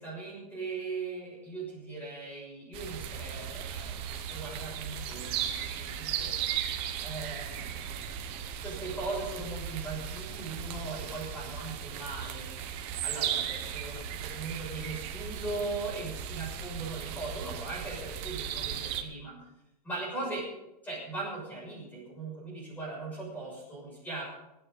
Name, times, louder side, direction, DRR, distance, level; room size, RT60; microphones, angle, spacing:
voice 1, 0.0-4.0 4.3-6.4 7.0-7.8 8.6-12.5 13.0-19.4 19.8-20.5 20.8-24.2, right 3 dB, 10° left, -4 dB, 6.5 m, -39 dB
sound 1, 2.7-19.0, right 9 dB, 25° right, 1.1 m, -36 dB
27.5 x 9.5 x 4.0 m, 0.90 s
supercardioid pair, 175°, 21 cm